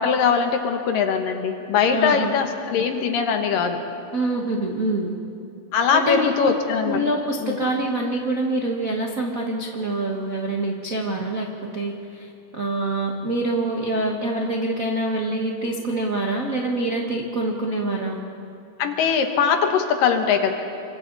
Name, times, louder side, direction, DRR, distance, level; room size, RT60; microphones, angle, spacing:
voice 1, 0.0-3.8 5.7-7.0 7.4-7.6 18.8-20.5, left 6 dB, 65° left, 5 dB, 2.7 m, -21 dB
voice 2, 1.9-2.3 4.1-5.1 5.9-6.5 6.8-18.2, right 2 dB, 80° right, -1 dB, 0.7 m, -25 dB
29.0 x 25.5 x 4.1 m, 2.6 s
omnidirectional pair, 4.5 m